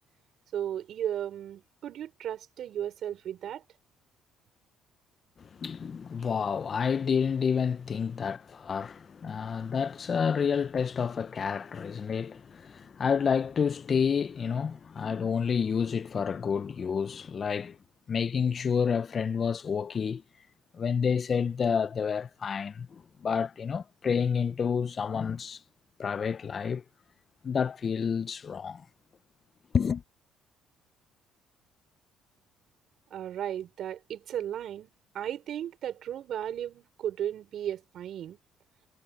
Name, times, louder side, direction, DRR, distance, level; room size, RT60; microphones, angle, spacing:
voice 1, 0.5-3.6 33.1-38.4, right 10 dB, 65° right, 5.1 m, -35 dB
voice 2, 5.6-17.8 18.1-20.2 20.7-25.6 26.0-26.8 27.4-28.8 29.7-30.0, left 6 dB, 45° left, 0.8 m, -29 dB
supercardioid pair, 80°, 0 cm